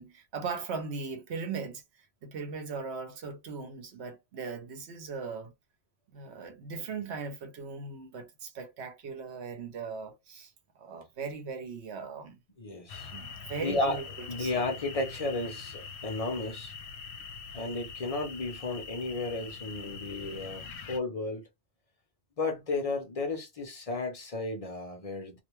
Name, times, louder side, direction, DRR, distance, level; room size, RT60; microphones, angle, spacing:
voice 1, 0.0-1.8 2.2-5.5 6.1-10.5 10.8-12.4 13.1-14.6, right 5 dB, 70° right, 1.0 m, -39 dB
voice 2, 12.6-13.1 13.6-14.0 14.3-16.7 17.5-21.4 22.4-25.4, left 2 dB, 40° left, 0.6 m, -33 dB
sound 1, 12.9-21.0, left 5 dB, 70° left, 0.8 m, -43 dB
2.4 x 2.2 x 3.0 m
omnidirectional pair, 1.2 m